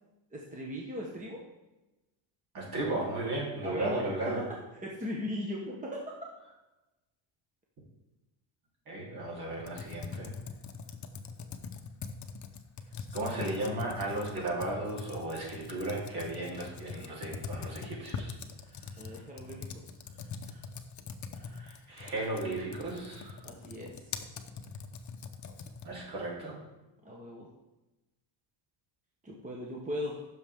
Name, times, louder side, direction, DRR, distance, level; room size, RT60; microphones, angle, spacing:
voice 1, 0.3-1.4 3.6-6.0 19.0-19.8 23.4-24.1 27.0-27.5 29.2-30.2, left 1 dB, 15° right, -2 dB, 1.1 m, -38 dB
voice 2, 2.5-4.4 8.9-10.3 13.1-18.3 21.5-23.4 25.8-26.5, right 2 dB, 50° right, -4 dB, 3.5 m, -35 dB
Computer keyboard, 9.6-26.0, left 5 dB, 40° left, 0.8 m, -43 dB
15.5 x 6.4 x 3.6 m, 1.0 s
cardioid pair, 145°, 47 cm